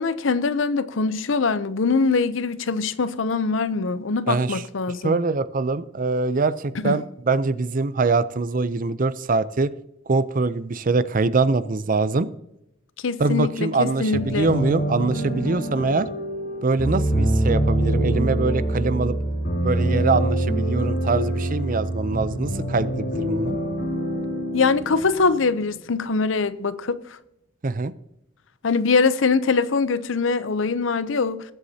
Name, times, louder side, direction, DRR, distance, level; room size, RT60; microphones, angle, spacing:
voice 1, 0.0-5.2 6.8-7.0 13.0-14.5 24.5-27.0 28.6-31.4, left 4 dB, 70° left, 0.6 m, -23 dB
voice 2, 4.3-4.6 5.0-9.7 10.1-12.3 13.2-16.1 16.6-19.1 19.6-23.6 27.6-27.9, right 3 dB, 40° right, 0.5 m, -23 dB
sound 1, 14.1-25.8, right 1 dB, 55° left, 3.4 m, -25 dB
21.0 x 8.1 x 2.8 m
head